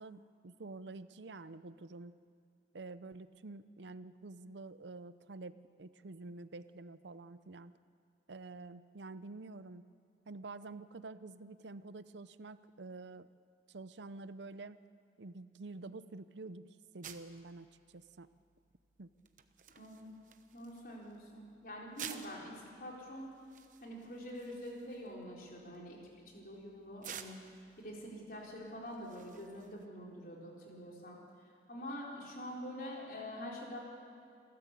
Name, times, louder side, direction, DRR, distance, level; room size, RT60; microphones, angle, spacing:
voice 1, 0.0-2.2 2.7-7.7 8.3-9.9 10.3-13.3 13.7-14.8 15.2-18.3 19.0-19.1, right 3 dB, 85° right, 14 dB, 0.7 m, -48 dB
sound 1, 17.0-29.9, right 8 dB, 45° right, 1.0 m, -54 dB
voice 2, 19.8-20.1 20.5-23.3 23.8-26.0 26.3-27.4 27.8-31.2 31.7-33.8, equal, 50° left, -2 dB, 4.4 m, -46 dB
28.0 x 13.0 x 8.4 m, 2.3 s
head